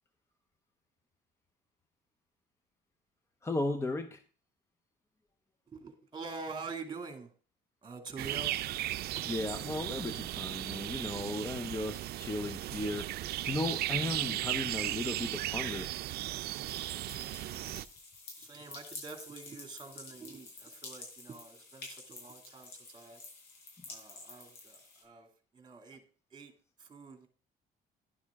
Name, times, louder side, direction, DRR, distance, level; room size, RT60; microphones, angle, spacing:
voice 1, 3.4-4.2 9.2-15.9, left 2 dB, 15° left, 9 dB, 0.8 m, -36 dB
voice 2, 5.7-7.3 7.8-8.5 18.4-23.2 23.9-25.3 25.5-26.0 26.3-26.5 26.8-27.3, right 4 dB, 25° right, 6 dB, 2.3 m, -46 dB
sound 1, 8.2-17.8, right 15 dB, 70° right, 0.5 m, -36 dB
sound 2, 16.7-25.0, left 3 dB, 70° left, 5.7 m, -50 dB
11.5 x 11.0 x 3.6 m, 0.37 s
cardioid pair, 110°, 17 cm